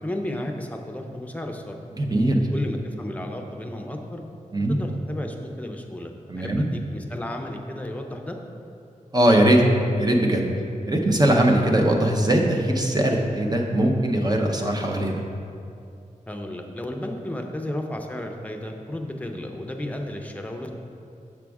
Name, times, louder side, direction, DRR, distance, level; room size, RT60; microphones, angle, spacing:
voice 1, 0.0-1.8 2.5-4.2 4.7-8.4 16.3-20.7, left 1 dB, 10° left, 3 dB, 0.6 m, -33 dB
voice 2, 2.0-2.5 4.5-4.8 6.3-6.7 9.1-9.6 10.0-10.5 10.9-15.2, right 1 dB, 30° right, 1 dB, 0.8 m, -20 dB
7.4 x 6.1 x 3.5 m, 2.5 s
wide cardioid pair, 80°, 14 cm